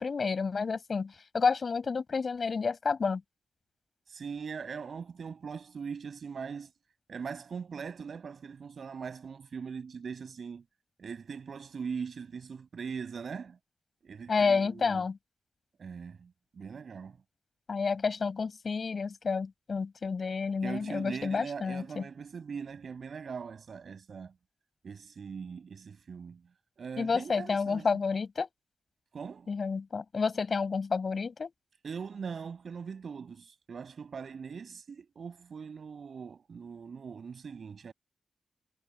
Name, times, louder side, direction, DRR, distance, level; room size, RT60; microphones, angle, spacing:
voice 1, 0.0-3.2 14.3-15.2 17.7-22.0 27.0-28.5 29.5-31.5, left 5 dB, 45° left, 7.5 m, -30 dB
voice 2, 4.1-6.7 7.1-10.6 11.0-13.6 14.0-15.0 15.8-17.2 20.6-24.3 24.8-26.4 26.8-27.9 29.1-29.5 31.8-37.9, right 6 dB, 60° right, 6.7 m, -41 dB
wide cardioid pair, 145°, 0 cm